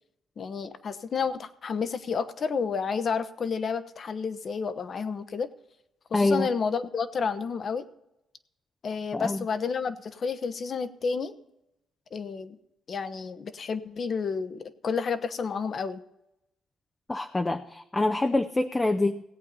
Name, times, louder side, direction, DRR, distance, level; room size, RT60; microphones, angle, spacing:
voice 1, 0.4-5.5 6.1-7.9 8.8-11.3 12.1-12.6 12.9-16.0, left 5 dB, 50° left, 11 dB, 1.0 m, -30 dB
voice 2, 6.1-6.5 9.1-9.5 17.1-19.2, left 2 dB, 15° left, 6 dB, 0.6 m, -26 dB
17.5 x 8.3 x 4.1 m, 0.85 s
cardioid pair, 90°, 0 cm